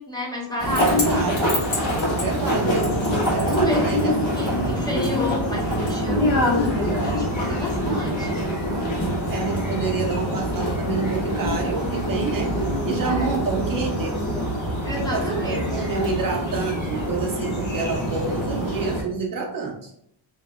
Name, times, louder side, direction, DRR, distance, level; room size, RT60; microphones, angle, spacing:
voice 1, 0.0-1.1 1.6-2.1 3.5-8.4 13.0-13.3 14.8-15.7, left 1 dB, 10° left, -4 dB, 0.5 m, -30 dB
sound 1, 0.6-19.0, equal, 65° left, 1.3 m, -24 dB
voice 2, 0.7-1.6 2.1-3.0 3.3-4.2 7.7-8.3 9.3-12.5 12.9-14.2 15.0-19.9, right 4 dB, 45° right, 1 dB, 0.4 m, -28 dB
2.7 x 2.0 x 2.2 m, 0.72 s
cardioid pair, 105°, 49 cm